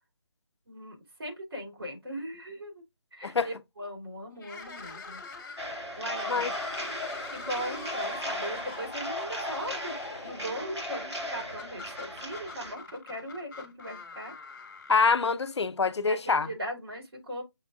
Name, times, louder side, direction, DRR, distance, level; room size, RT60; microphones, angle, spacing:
voice 1, 0.7-2.8 3.1-5.2 5.7-6.9 7.3-14.3 16.0-17.4, equal, 60° right, 2.5 m, -39 dB
sound 1, 4.4-15.7, left 4 dB, 45° left, 1.2 m, -44 dB
sound 2, 5.6-12.7, equal, 85° right, 2.2 m, -36 dB
voice 2, 14.9-16.5, left 5 dB, 80° left, 0.5 m, -25 dB
6.2 x 2.3 x 2.2 m
figure-of-eight pair, 160°, 14 cm